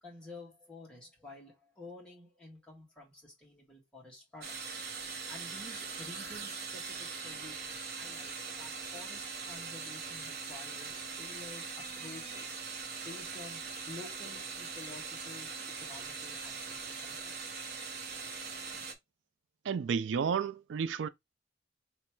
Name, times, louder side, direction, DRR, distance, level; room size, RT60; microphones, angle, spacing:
voice 1, 0.0-4.8 5.3-12.5 13.0-17.7, left 2 dB, 5° left, 1.6 m, -51 dB
sound 1, 4.4-18.9, right 5 dB, 55° right, 0.8 m, -41 dB
voice 2, 19.6-21.1, right 6 dB, 80° right, 0.4 m, -31 dB
3.2 x 3.0 x 4.4 m
head